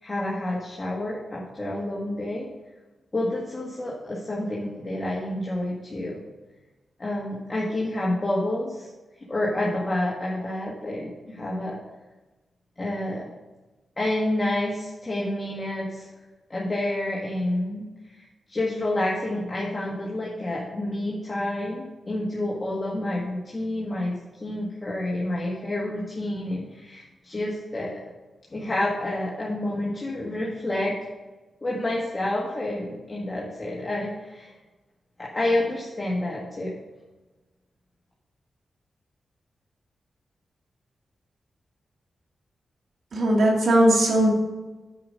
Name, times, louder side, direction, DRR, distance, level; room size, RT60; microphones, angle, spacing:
voice 1, 0.0-2.5 3.1-6.2 7.0-8.9 9.3-11.8 12.8-13.3 14.0-16.1 16.5-28.0 28.5-31.0 31.6-34.5 35.2-36.8, left 1 dB, 25° left, -5 dB, 1.7 m, -29 dB
voice 2, 43.1-44.3, right 1 dB, 75° right, -2 dB, 2.6 m, -19 dB
8.8 x 5.0 x 6.5 m, 1.2 s
wide cardioid pair, 100°, 0 cm